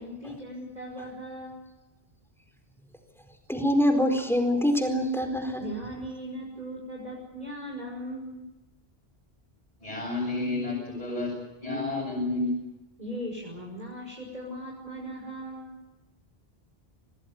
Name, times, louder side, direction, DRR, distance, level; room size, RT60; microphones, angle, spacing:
voice 1, 0.0-1.6 5.6-8.4 13.0-15.7, equal, 40° right, -3 dB, 6.0 m, -38 dB
voice 2, 3.5-5.6, equal, ahead, 5 dB, 4.5 m, -24 dB
voice 3, 9.8-12.7, left 2 dB, 40° left, -5 dB, 7.5 m, -30 dB
26.5 x 18.5 x 9.6 m, 1.0 s
omnidirectional pair, 1.0 m